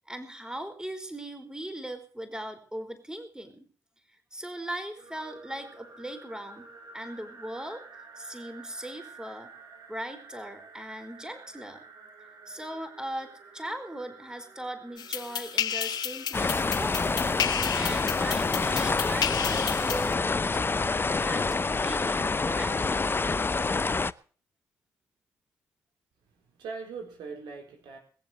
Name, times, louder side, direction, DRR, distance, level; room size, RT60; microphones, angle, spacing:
voice 1, 0.1-3.7 4.3-9.5 9.9-11.8 12.5-17.2 17.7-23.0, right 1 dB, 10° right, 8 dB, 4.6 m, -39 dB
sound 1, 5.0-18.3, right 4 dB, 60° right, 4.6 m, -51 dB
sound 2, 15.0-20.1, left 9 dB, 65° left, 1.5 m, -32 dB
sound 3, 16.3-24.1, left 3 dB, 30° left, 0.7 m, -27 dB
voice 2, 26.2-28.0, right 4 dB, 80° right, 3 dB, 4.2 m, -41 dB
21.0 x 7.6 x 7.8 m, 0.42 s
hypercardioid pair, 50°, 8 cm